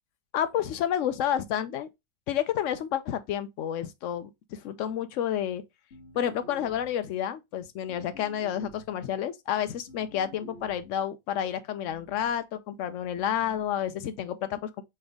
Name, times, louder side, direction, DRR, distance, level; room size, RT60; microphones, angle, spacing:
voice 1, 0.3-1.9 2.3-5.6 6.1-14.8, left 10 dB, 65° left, 0.9 m, -30 dB
sound 1, 5.9-7.0 7.9-9.0 9.9-11.0 11.9-12.4 13.2-13.7, left 1 dB, 45° left, 1.5 m, -50 dB
4.4 x 3.3 x 3.5 m
omnidirectional pair, 1.6 m